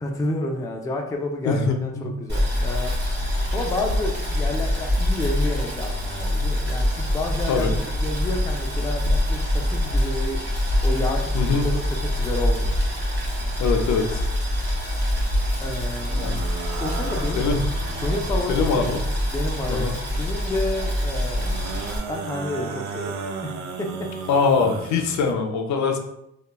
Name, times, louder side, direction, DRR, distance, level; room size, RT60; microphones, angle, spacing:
voice 1, 0.0-3.0 3.5-10.5 10.8-11.3 11.6-12.8 15.6-16.2 16.8-17.5 18.0-18.9 19.3-21.7 22.1-23.1 23.4-23.5 23.8-23.9 24.2-24.3, left 2 dB, 10° left, 1 dB, 0.3 m, -30 dB
voice 2, 1.4-2.1 7.5-7.7 11.3-11.7 13.6-14.3 16.1-16.4 17.4-17.6 18.5-19.0 19.7-19.9 24.3-26.0, left 5 dB, 70° left, 5 dB, 0.5 m, -23 dB
Boiling, 2.3-22.0, left 1 dB, 35° right, 0.9 m, -25 dB
sound 1, 16.0-19.4 21.4-25.3, right 4 dB, 70° right, 0.4 m, -35 dB
2.9 x 2.2 x 2.2 m, 0.82 s
cardioid pair, 90°, 30 cm